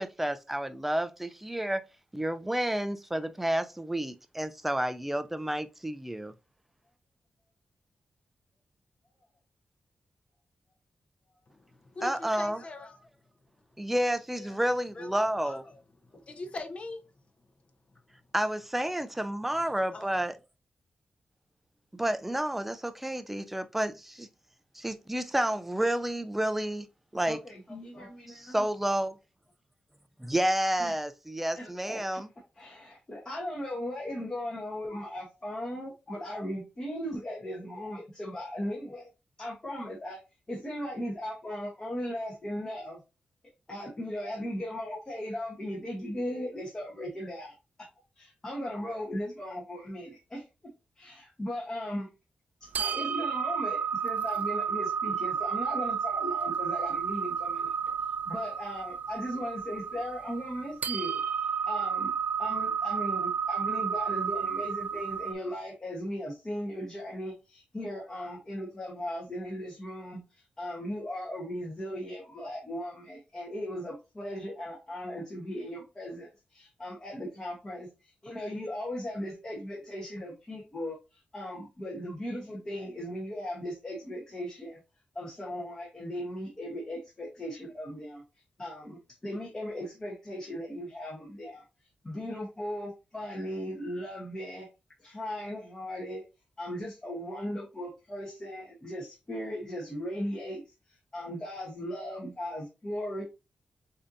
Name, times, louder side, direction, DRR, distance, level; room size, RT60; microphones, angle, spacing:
voice 1, 0.0-1.8 2.1-6.3 12.0-12.6 13.8-15.6 18.3-20.3 21.9-24.3 24.8-26.9 27.1-27.4 28.3-29.2 30.2-32.3, right 1 dB, 5° right, 0.4 m, -30 dB
voice 2, 11.5-13.1 14.3-14.6 14.9-15.2 15.4-15.8 16.1-17.0 18.4-18.5 18.8-19.0 19.4-20.3, left 2 dB, 45° left, 0.8 m, -43 dB
voice 3, 27.3-28.6 30.8-30.9 31.5-32.2 32.6-39.1 39.4-40.2 40.5-43.0 43.7-47.9 48.2-50.4 51.0-52.1 52.6-57.8 58.3-62.1 62.4-84.8 85.1-88.2 88.6-91.6 92.0-94.7 95.0-96.2 96.6-100.6 100.9-103.2, equal, 25° left, 1.2 m, -37 dB
sound 1, 52.7-65.3, right 7 dB, 75° right, 0.4 m, -31 dB
6.7 x 2.7 x 2.6 m
wide cardioid pair, 140°, 3 cm